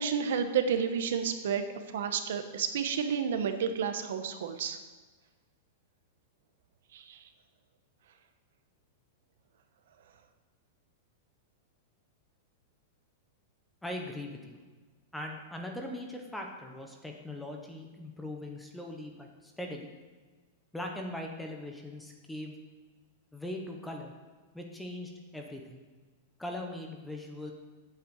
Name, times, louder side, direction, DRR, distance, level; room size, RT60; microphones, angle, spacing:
voice 1, 0.0-1.6 1.9-4.8 6.9-7.2, right 7 dB, 60° right, 8 dB, 1.1 m, -30 dB
voice 2, 13.8-14.6 15.1-19.9 20.7-22.6 23.3-24.1 24.5-25.8 26.4-27.5, left 1 dB, 5° left, 2 dB, 0.8 m, -40 dB
8.5 x 7.6 x 7.9 m, 1.3 s
supercardioid pair, 180°, 0 cm